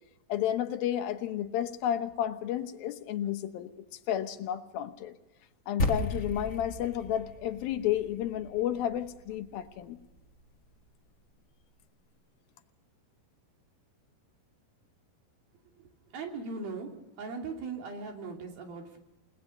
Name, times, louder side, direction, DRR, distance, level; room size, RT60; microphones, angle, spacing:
voice 1, 0.3-5.1 5.7-10.0, left 11 dB, 80° left, 8 dB, 2.8 m, -32 dB
sound 1, 5.8-10.3, left 1 dB, 40° left, 1.1 m, -36 dB
voice 2, 15.8-16.9 17.2-19.0, right 4 dB, 75° right, 2 dB, 4.7 m, -39 dB
29.0 x 19.0 x 5.7 m, 1.0 s
omnidirectional pair, 4.3 m